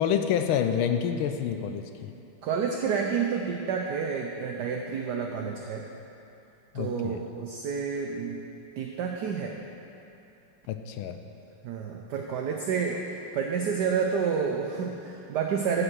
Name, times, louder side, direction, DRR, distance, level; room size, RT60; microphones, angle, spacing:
voice 1, 0.0-2.1 6.7-7.2 10.7-11.2, left 8 dB, 80° left, 8 dB, 1.4 m, -28 dB
voice 2, 2.4-5.8 6.7-8.4 8.8-9.5 11.6-15.8, right 6 dB, 70° right, 1 dB, 1.0 m, -29 dB
14.5 x 5.1 x 6.2 m, 2.7 s
omnidirectional pair, 2.4 m